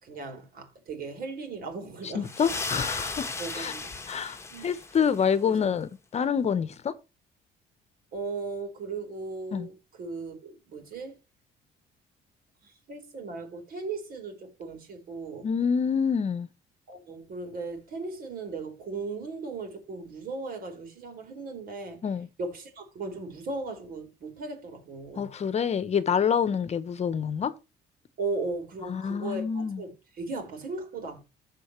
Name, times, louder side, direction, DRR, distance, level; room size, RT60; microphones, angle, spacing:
voice 1, 0.0-2.3 3.4-3.9 4.5-4.7 5.4-5.8 8.1-11.2 12.6-15.5 16.9-22.0 22.4-25.3 28.2-31.2, right 3 dB, 60° right, 4.7 m, -37 dB
voice 2, 2.1-3.7 4.1-6.9 9.5-9.7 15.4-16.5 22.0-22.3 25.1-27.5 28.9-29.8, left 7 dB, 40° left, 1.0 m, -27 dB
sound 1, 2.2-5.3, left 3 dB, 15° left, 1.3 m, -35 dB
15.0 x 5.4 x 3.1 m
cardioid pair, 110°, 17 cm